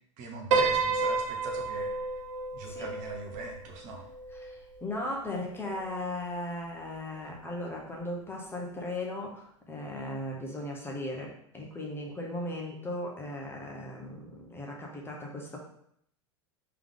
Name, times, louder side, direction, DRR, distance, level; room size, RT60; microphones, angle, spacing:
voice 1, 0.2-2.0 2.5-4.1, right 3 dB, 50° right, 1 dB, 1.0 m, -41 dB
Piano, 0.5-4.9, right 4 dB, 70° right, 0.8 m, -31 dB
voice 2, 4.3-15.6, left 1 dB, 15° left, -1 dB, 1.1 m, -37 dB
3.4 x 3.4 x 3.7 m, 0.69 s
hypercardioid pair, 90°, 16 cm